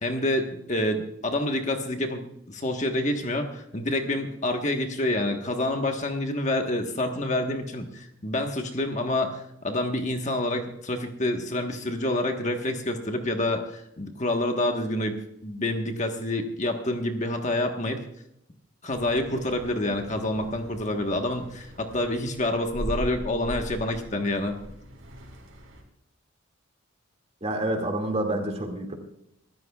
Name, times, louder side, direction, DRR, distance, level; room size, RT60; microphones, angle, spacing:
voice 1, 0.0-15.1 15.4-18.0 18.8-24.5, left 1 dB, 35° left, 4 dB, 1.3 m, -28 dB
Church Bells, 18.9-25.8, equal, 70° right, 4.0 m, -40 dB
voice 2, 27.4-28.9, right 1 dB, 30° right, 3 dB, 2.2 m, -28 dB
25.0 x 13.5 x 2.4 m, 0.80 s
head